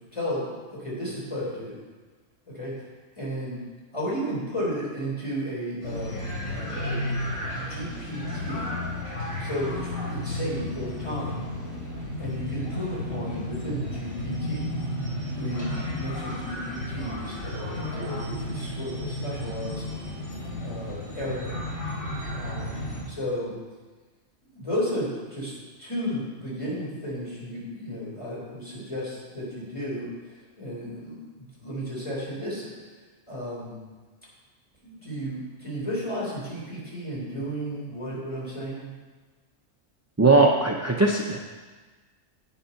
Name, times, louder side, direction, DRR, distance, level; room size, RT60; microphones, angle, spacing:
voice 1, 0.0-1.8 2.5-2.8 3.2-3.6 3.9-6.2 6.5-7.3 7.5-8.7 9.4-11.4 12.2-14.7 15.3-19.8 20.6-21.6 22.3-22.7 23.1-23.6 24.5-30.1 30.6-32.7 33.3-33.8 34.8-38.9, equal, 25° left, -6 dB, 4.1 m, -33 dB
sound 1, 5.8-23.0, left 1 dB, 85° left, 4.2 m, -33 dB
voice 2, 40.2-41.4, right 3 dB, 20° right, 0 dB, 0.4 m, -19 dB
9.3 x 8.2 x 5.7 m, 1.3 s
omnidirectional pair, 1.4 m